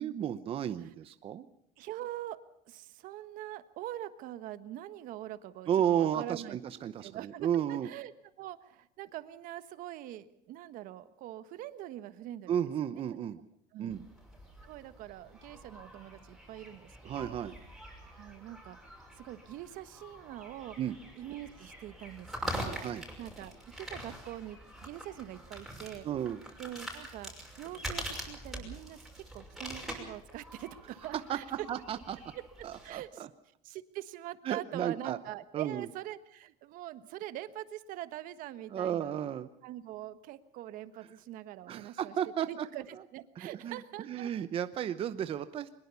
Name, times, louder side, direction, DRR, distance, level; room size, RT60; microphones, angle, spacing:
voice 1, 0.0-1.5 5.7-7.9 12.5-13.4 13.8-14.0 17.0-17.5 20.8-21.0 22.8-23.0 26.0-26.4 31.3-31.4 31.7-32.2 32.6-33.0 34.4-35.2 35.5-35.9 38.7-39.5 41.7-42.7 43.4-43.8 44.1-45.7, right 10 dB, 35° right, 11 dB, 0.8 m, -33 dB
voice 2, 1.8-2.4 2.7-6.6 7.0-7.5 7.8-8.1 8.4-12.6 12.9-13.0 13.7-14.1 14.6-17.4 18.1-18.8 19.2-20.8 21.2-22.8 23.2-26.1 26.6-31.7 32.3-32.4 32.8-33.3 33.6-39.1 39.6-42.1 42.5-44.3, right 13 dB, 60° right, 12 dB, 1.3 m, -43 dB
sound 1, 13.9-32.9, equal, ahead, 6.0 m, -45 dB
23.0 x 21.0 x 7.0 m, 0.71 s
cardioid pair, 150°, 16 cm